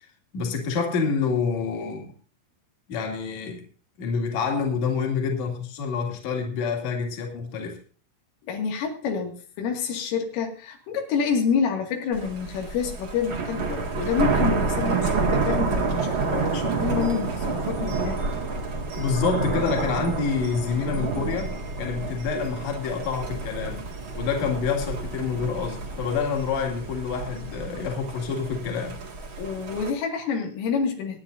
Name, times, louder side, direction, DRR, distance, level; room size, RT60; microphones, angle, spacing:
voice 1, 0.3-2.1 2.9-3.6 4.0-7.8 18.9-23.8 24.1-29.0, left 5 dB, 45° left, 1 dB, 2.8 m, -27 dB
voice 2, 8.4-18.2 29.4-31.2, left 6 dB, 90° left, 2 dB, 4.7 m, -28 dB
Thunder, 12.1-29.9, right 4 dB, 50° right, 1.4 m, -29 dB
24.5 x 9.7 x 2.6 m, 0.41 s
omnidirectional pair, 5.6 m